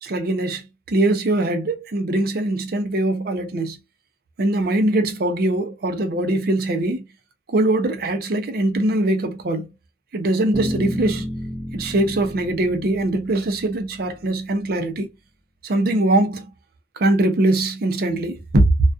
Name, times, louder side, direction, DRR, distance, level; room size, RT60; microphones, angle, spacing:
voice 1, 0.0-3.8 4.4-7.0 7.5-9.7 10.1-11.3 11.7-15.1 15.6-16.5 17.0-18.6, right 1 dB, 55° right, 0.5 m, -22 dB
sound 1, 10.5-14.5, equal, 5° left, 0.6 m, -32 dB
2.3 x 2.2 x 2.5 m
head